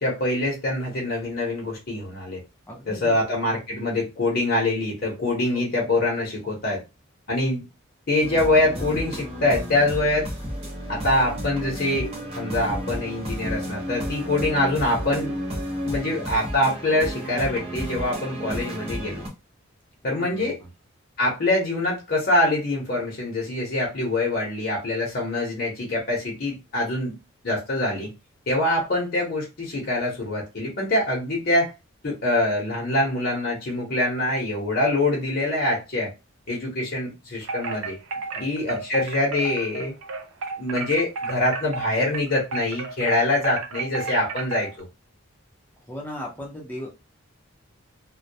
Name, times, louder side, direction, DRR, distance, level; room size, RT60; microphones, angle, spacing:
voice 1, 0.0-2.4 2.9-6.8 7.3-7.6 8.1-10.3 10.9-15.4 15.8-19.2 20.0-20.6 21.2-27.2 27.4-28.1 28.5-31.7 32.0-36.1 36.5-38.0 38.4-39.9 40.6-44.9, left 1 dB, 50° left, 0.8 m, -24 dB
voice 2, 2.7-3.3 5.5-5.6 20.0-20.7 38.2-38.9 45.9-46.9, equal, 10° left, 0.6 m, -38 dB
sound 1, 8.2-19.3, equal, 30° right, 0.8 m, -32 dB
Wind chime, 37.4-44.8, right 4 dB, 80° right, 0.4 m, -33 dB
2.2 x 2.2 x 2.6 m
head